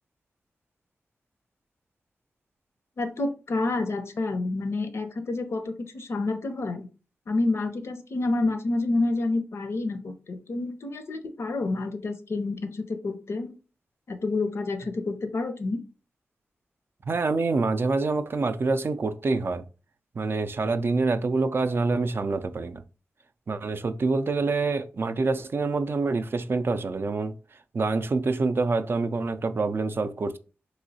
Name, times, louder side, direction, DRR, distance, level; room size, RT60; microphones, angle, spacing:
voice 1, 3.0-6.9 7.3-13.6 14.1-15.8, left 2 dB, 65° left, 0.5 m, -29 dB
voice 2, 17.1-19.7 20.2-22.8 23.5-27.4 27.7-30.4, right 3 dB, 50° right, 0.3 m, -26 dB
3.0 x 2.9 x 2.7 m
cardioid pair, 50°, 5 cm